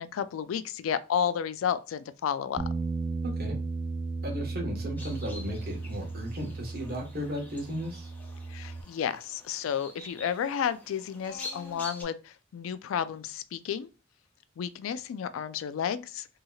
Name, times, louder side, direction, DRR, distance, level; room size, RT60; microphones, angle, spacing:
voice 1, 0.0-2.6 8.5-13.9 14.6-16.3, left 8 dB, 75° left, 0.3 m, -32 dB
Bass guitar, 2.6-8.8, right 3 dB, 25° right, 0.4 m, -35 dB
voice 2, 3.2-3.6 4.2-8.1, equal, 50° right, 1.1 m, -35 dB
sound 1, 5.0-12.0, left 2 dB, 10° left, 0.7 m, -46 dB
2.8 x 2.7 x 2.3 m
head